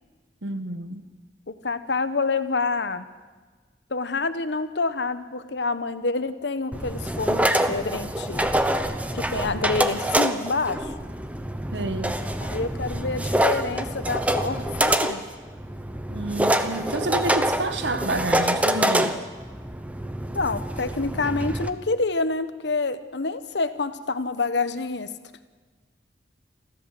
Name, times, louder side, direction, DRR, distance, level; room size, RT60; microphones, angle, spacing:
voice 1, 0.4-1.1 11.7-12.2 16.1-19.3, right 2 dB, 85° right, 1.4 m, -29 dB
voice 2, 1.5-3.1 3.9-8.4 9.1-10.9 12.4-15.2 20.3-25.1, left 3 dB, 80° left, 1.2 m, -27 dB
sound 1, 6.7-21.7, right 1 dB, 10° right, 1.0 m, -26 dB
28.5 x 14.0 x 7.8 m
head